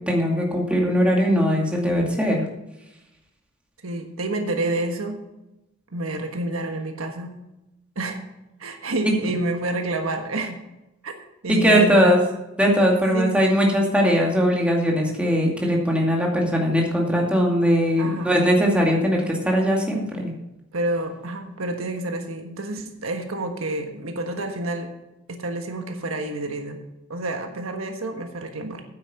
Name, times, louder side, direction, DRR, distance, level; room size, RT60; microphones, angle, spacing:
voice 1, 0.1-2.4 11.5-12.2 12.6-20.3, equal, 5° right, -1 dB, 2.3 m, -20 dB
voice 2, 3.8-5.2 5.9-7.3 7.9-8.2 8.6-10.6 11.0-11.1 11.4-12.2 13.1-13.4 18.0-18.3 20.7-24.9 25.3-26.8 27.1-28.8, right 2 dB, 75° right, 4 dB, 1.4 m, -28 dB
9.5 x 8.6 x 5.6 m, 0.94 s
head